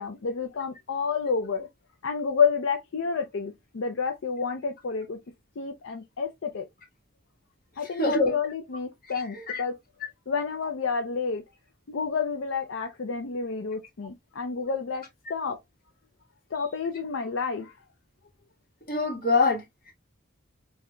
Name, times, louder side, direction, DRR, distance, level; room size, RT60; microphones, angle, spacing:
voice 1, 0.0-1.7 2.0-5.2 5.6-6.7 7.8-9.7 10.3-11.4 11.9-15.0 15.3-15.6 16.5-17.8, left 5 dB, 70° left, 0.5 m, -29 dB
voice 2, 7.8-8.3 9.1-9.6 18.9-19.9, left 3 dB, 45° left, 1.4 m, -25 dB
5.3 x 2.7 x 2.3 m
head